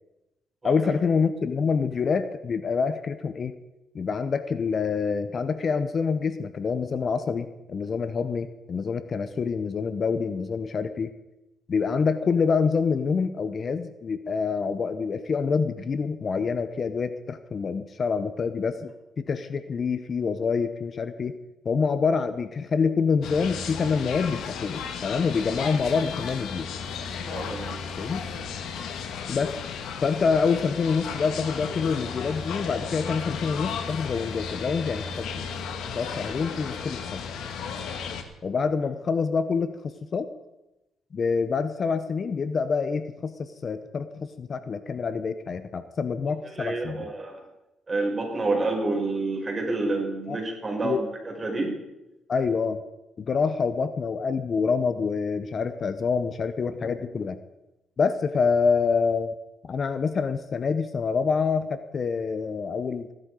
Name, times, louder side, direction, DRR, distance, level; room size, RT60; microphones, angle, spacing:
voice 1, 0.6-3.5 3.9-11.1 11.7-21.4 21.6-26.7 28.0-28.2 29.3-29.7 30.0-35.3 35.9-37.2 38.4-40.3 41.1-47.1 50.3-50.4 50.8-51.0 52.3-52.8 53.2-57.4 58.0-59.3 59.6-63.1, left 5 dB, 45° left, 11 dB, 0.8 m, -26 dB
sound 1, 23.2-38.2, left 6 dB, 75° left, 1.6 m, -34 dB
voice 2, 27.3-27.8 46.5-47.4 47.9-51.8, right 2 dB, 25° right, -1 dB, 5.5 m, -28 dB
16.5 x 12.0 x 4.9 m, 0.97 s
cardioid pair, 90°, 0 cm